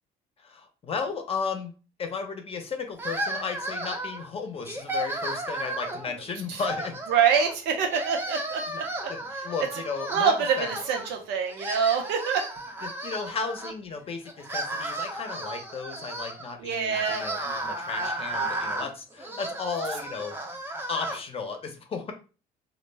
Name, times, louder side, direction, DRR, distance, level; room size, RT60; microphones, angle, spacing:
voice 1, 0.4-1.7 2.0-7.0 8.7-8.8 9.1-10.7 12.8-20.6 20.9-22.1, left 5 dB, 35° left, 5 dB, 0.6 m, -34 dB
sound 1, 3.0-4.3 4.7-6.1 6.6-7.6 7.9-11.1 11.4-13.7 14.3-21.2, right 1 dB, 15° right, 0.5 m, -34 dB
voice 2, 7.1-9.1 10.1-12.5 16.6-17.2, right 7 dB, 90° right, 3 dB, 0.7 m, -25 dB
2.2 x 2.1 x 3.2 m, 0.34 s
cardioid pair, 110°, 17 cm